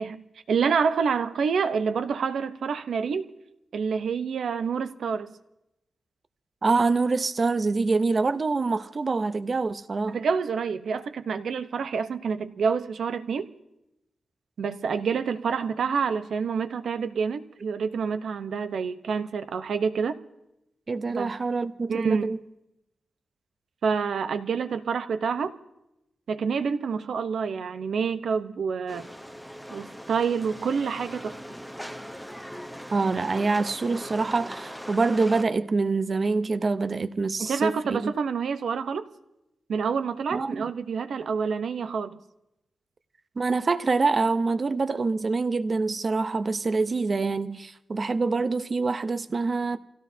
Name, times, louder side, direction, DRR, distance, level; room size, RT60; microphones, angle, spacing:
voice 1, 0.0-3.3 3.7-5.3 10.1-13.5 14.6-20.2 21.2-21.3 21.9-22.3 23.8-25.5 26.3-29.1 29.7-31.4 37.4-39.1 39.7-42.2, right 6 dB, 75° right, 0.9 m, -27 dB
voice 2, 6.6-10.2 20.9-22.4 32.9-38.1 40.3-40.7 43.4-49.8, right 3 dB, 40° right, 0.7 m, -25 dB
sound 1, 28.9-35.4, equal, ahead, 0.9 m, -40 dB
28.0 x 17.0 x 2.8 m
wide cardioid pair, 110°, 0 cm